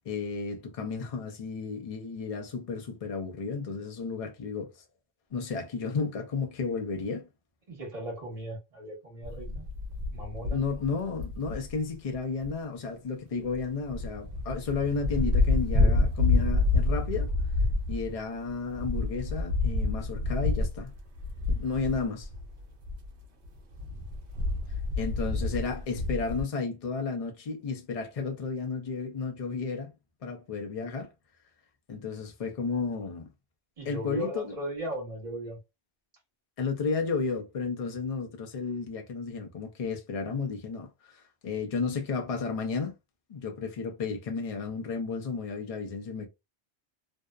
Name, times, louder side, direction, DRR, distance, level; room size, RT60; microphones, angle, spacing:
voice 1, 0.0-4.7 5.3-7.3 10.5-17.3 17.9-20.9 21.5-22.3 25.0-29.9 30.2-31.1 31.9-33.3 33.9-34.5 36.6-42.9 43.3-46.3, left 4 dB, 45° left, 0.5 m, -33 dB
voice 2, 7.7-9.6 10.1-10.6 25.4-25.8 33.8-35.6, right 1 dB, 35° right, 1.2 m, -38 dB
sound 1, 9.2-11.8 12.1-12.2 12.4-12.5 13.4-13.6 13.9-23.1 23.4-26.4, left 3 dB, 85° right, 1.0 m, -28 dB
2.7 x 2.0 x 2.3 m
omnidirectional pair, 1.1 m